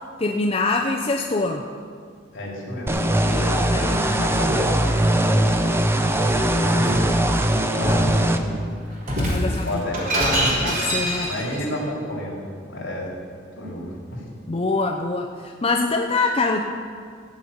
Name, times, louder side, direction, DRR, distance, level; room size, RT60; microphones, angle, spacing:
voice 1, 0.2-1.6 3.3-4.4 9.2-9.8 10.6-11.5 14.5-16.6, left 3 dB, 30° left, 2 dB, 0.6 m, -25 dB
voice 2, 2.3-5.5 6.5-7.3 7.7-8.5 9.4-10.0 10.4-10.7 11.2-12.4 12.7-13.1 13.6-14.2, left 1 dB, 70° left, -3 dB, 3.6 m, -31 dB
sound 1, 2.9-8.4, right 1 dB, 15° right, 0.7 m, -20 dB
Shatter, 6.5-7.1 7.8-8.2 9.0-11.6, equal, 45° right, 3.3 m, -25 dB
15.5 x 5.5 x 8.7 m, 2.1 s
head